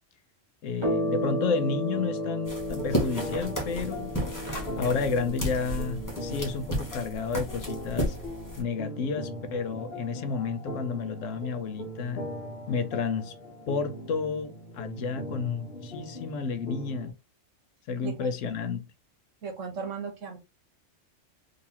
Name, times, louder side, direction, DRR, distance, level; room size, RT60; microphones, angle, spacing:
voice 1, 0.6-4.1 4.8-8.2 8.6-12.3 12.7-13.3 13.7-17.1 17.9-18.8, left 5 dB, 80° left, 1.0 m, -31 dB
sound 1, 0.8-9.7, equal, 20° right, 1.3 m, -35 dB
sound 2, 1.9-17.1, equal, 50° left, 1.1 m, -40 dB
sound 3, 2.4-8.6, equal, 15° left, 1.1 m, -33 dB
voice 2, 19.4-20.4, right 5 dB, 75° right, 1.4 m, -36 dB
3.8 x 2.9 x 2.8 m
omnidirectional pair, 1.3 m